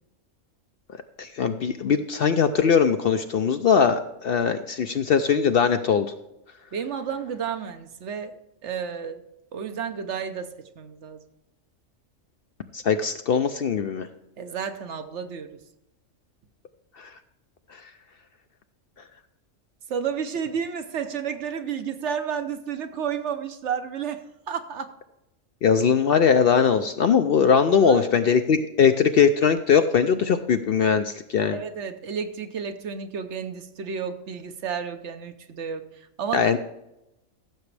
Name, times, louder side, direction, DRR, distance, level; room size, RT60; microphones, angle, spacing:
voice 1, 1.2-6.1 12.7-14.1 17.0-17.1 25.6-31.6 36.3-36.6, left 6 dB, 60° left, 8 dB, 0.6 m, -20 dB
voice 2, 6.7-8.4 8.6-9.2 9.5-11.2 14.4-15.6 19.9-24.9 27.8-28.0 31.5-35.8 36.2-36.5, right 7 dB, 65° right, 8 dB, 1.1 m, -31 dB
15.0 x 7.0 x 3.3 m, 0.89 s
omnidirectional pair, 1.3 m